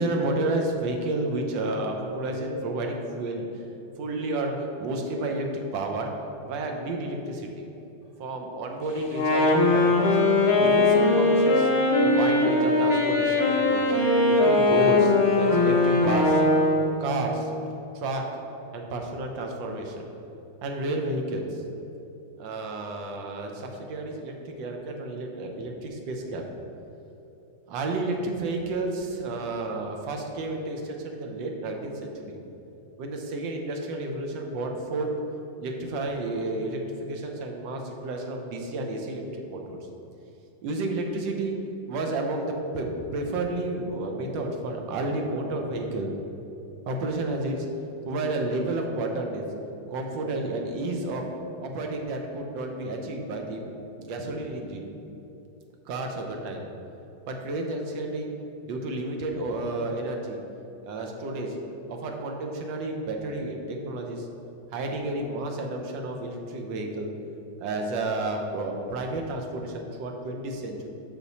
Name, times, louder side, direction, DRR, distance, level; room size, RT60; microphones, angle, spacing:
voice 1, 0.0-3.5 4.0-6.1 6.4-7.6 8.2-10.2 10.6-11.7 12.0-13.8 14.3-16.4 17.0-17.5 17.9-18.3 18.7-20.1 20.6-21.6 22.4-26.4 27.7-32.4 33.0-35.1 35.6-39.8 40.6-41.6 41.9-46.1 46.9-47.7 48.1-49.5 49.9-51.3 51.6-53.6 54.0-54.9 55.9-56.6 57.3-58.3 58.7-60.4 60.8-61.6 61.9-64.3 64.7-67.1 67.6-70.9, right 2 dB, 75° right, 2 dB, 1.5 m, -31 dB
Wind instrument woodwind instrument, 9.1-17.0, left 2 dB, 50° left, 0.9 m, -21 dB
6.2 x 5.8 x 4.1 m, 3.0 s
omnidirectional pair, 2.1 m